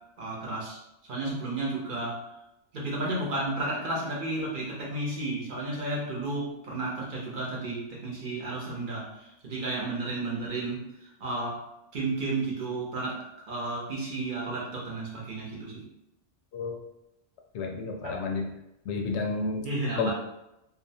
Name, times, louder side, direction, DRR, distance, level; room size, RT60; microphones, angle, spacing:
voice 1, 0.2-0.8 1.1-2.2 2.7-11.6 11.9-15.9 18.0-18.2 19.6-20.1, right 2 dB, 55° right, -4 dB, 0.8 m, -32 dB
voice 2, 17.5-18.5 18.9-19.7 20.0-20.1, left 4 dB, 80° left, 1 dB, 0.9 m, -30 dB
2.6 x 2.1 x 2.6 m, 0.87 s
omnidirectional pair, 1.1 m